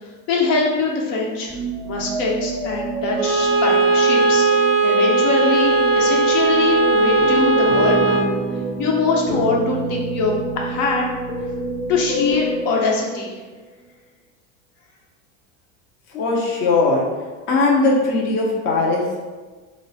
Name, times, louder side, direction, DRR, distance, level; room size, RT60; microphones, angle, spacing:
voice 1, 0.3-1.5 1.8-8.3 8.8-11.1 11.9-13.3, left 3 dB, 75° left, -1 dB, 0.9 m, -22 dB
sound 1, 1.5-13.5, right 3 dB, 5° right, 0.7 m, -29 dB
Bowed string instrument, 3.2-8.4, right 3 dB, 45° right, 0.4 m, -18 dB
sound 2, 7.2-12.6, left 1 dB, 50° left, 0.8 m, -28 dB
voice 2, 16.1-17.0 17.5-19.2, left 3 dB, 30° left, -2 dB, 0.4 m, -19 dB
3.1 x 2.1 x 4.0 m, 1.3 s
cardioid pair, 165°, 39 cm